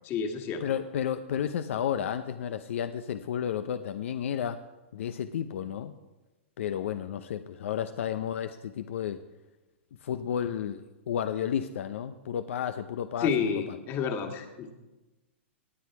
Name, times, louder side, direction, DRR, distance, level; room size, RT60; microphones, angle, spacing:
voice 1, 0.0-0.7 13.2-14.7, left 6 dB, 35° left, 5 dB, 1.8 m, -30 dB
voice 2, 0.6-4.6 4.9-5.9 6.6-9.2 10.0-13.3 13.7-13.8, left 9 dB, 70° left, 10 dB, 0.6 m, -32 dB
18.5 x 8.3 x 4.7 m, 1.1 s
hypercardioid pair, 135°, 7 cm